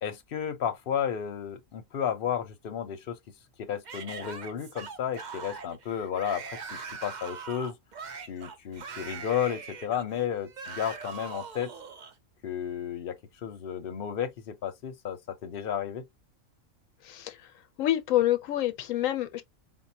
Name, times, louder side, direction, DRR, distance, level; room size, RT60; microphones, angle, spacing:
voice 1, 0.0-3.2 3.6-7.7 8.3-11.7 12.4-16.0, left 9 dB, 50° left, 0.8 m, -33 dB
Yell / Screaming, 3.8-12.1, right 5 dB, 50° right, 0.6 m, -42 dB
voice 2, 17.0-17.4 17.8-19.4, left 13 dB, 80° left, 1.0 m, -27 dB
4.6 x 2.1 x 2.7 m
omnidirectional pair, 1.4 m